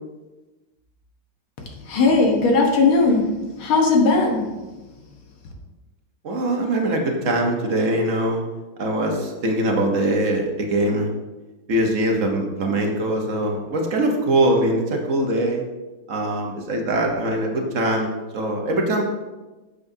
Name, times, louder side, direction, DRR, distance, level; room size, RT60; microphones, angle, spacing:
voice 1, 1.6-3.3 3.6-4.5 5.0-5.1, left 3 dB, 75° left, 1 dB, 2.0 m, -18 dB
voice 2, 6.2-8.4 8.8-11.1 11.7-15.6 16.1-19.0, right 1 dB, 50° right, 1 dB, 1.1 m, -22 dB
8.9 x 7.1 x 2.7 m, 1.2 s
omnidirectional pair, 2.3 m